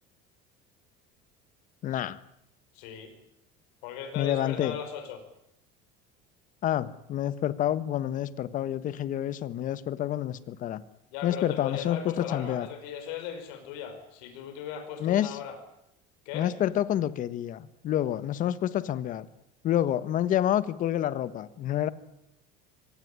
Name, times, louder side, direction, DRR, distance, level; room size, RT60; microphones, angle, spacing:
voice 1, 1.8-2.2 4.1-4.8 6.6-10.8 11.2-12.7 15.0-15.4 16.3-19.3 19.6-21.9, left 11 dB, 40° left, 16 dB, 1.3 m, -28 dB
voice 2, 2.7-3.1 3.8-5.2 11.1-15.6 16.3-16.5, left 8 dB, 90° left, 7 dB, 5.3 m, -38 dB
24.5 x 18.0 x 10.0 m, 0.82 s
cardioid pair, 155°, 21 cm